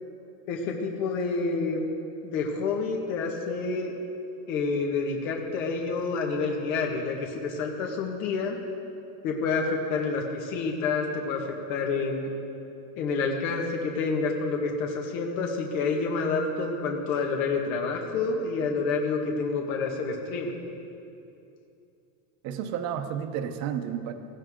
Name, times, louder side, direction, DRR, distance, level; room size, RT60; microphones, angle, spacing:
voice 1, 0.5-1.8 2.2-3.9 4.5-8.6 9.2-12.3 13.0-20.6, left 4 dB, 80° left, 0 dB, 1.8 m, -28 dB
voice 2, 22.4-24.1, right 9 dB, 45° right, 8 dB, 0.9 m, -31 dB
17.5 x 15.5 x 3.8 m, 2.7 s
cardioid pair, 170°, 39 cm